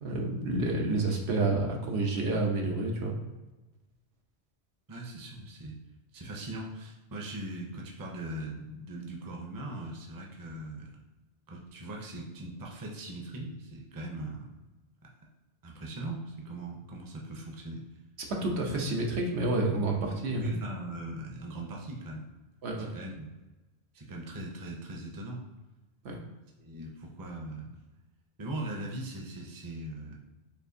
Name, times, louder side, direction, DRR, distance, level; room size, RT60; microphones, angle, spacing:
voice 1, 0.0-3.1 18.3-20.5 22.6-22.9 26.0-26.2, right 2 dB, 85° right, 0 dB, 1.1 m, -29 dB
voice 2, 4.9-5.8 6.1-11.0 11.5-14.5 15.6-17.8 20.0-22.3 22.8-23.3 23.9-25.4 26.6-27.8 28.4-30.2, right 1 dB, 25° right, -1 dB, 0.5 m, -40 dB
6.8 x 2.5 x 2.7 m, 1.1 s
omnidirectional pair, 1.1 m